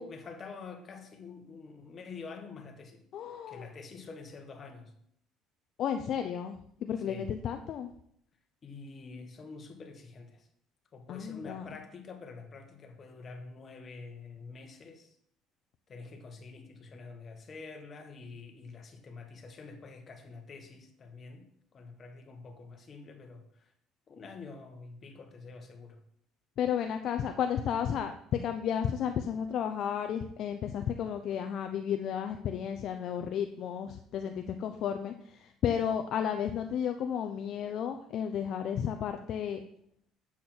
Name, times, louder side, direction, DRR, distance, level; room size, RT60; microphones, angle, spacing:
voice 1, 0.0-3.0 3.5-4.9 7.1-7.3 8.6-10.5 10.9-15.2 15.9-23.7 24.1-26.0, left 4 dB, 35° left, 5 dB, 1.4 m, -47 dB
voice 2, 3.1-3.7 5.8-7.9 11.1-11.7 26.6-39.6, left 8 dB, 55° left, 7 dB, 0.6 m, -33 dB
8.3 x 7.2 x 4.4 m, 0.68 s
cardioid pair, 135°, 0 cm